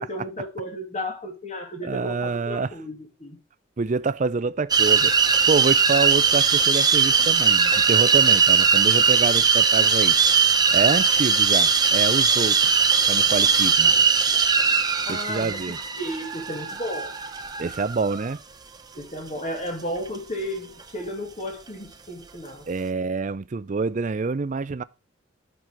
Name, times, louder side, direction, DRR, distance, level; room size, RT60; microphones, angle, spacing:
voice 1, 0.0-3.4 15.0-15.6 16.0-17.1 18.9-22.7, equal, 35° left, 2.2 m, -33 dB
voice 2, 1.8-2.7 3.8-5.1 5.5-10.2 10.7-13.9 15.1-15.8 17.6-18.4 22.7-24.8, right 4 dB, 40° right, 0.4 m, -26 dB
sound 1, 4.7-18.3, right 5 dB, 20° right, 0.8 m, -20 dB
11.0 x 6.1 x 4.7 m
head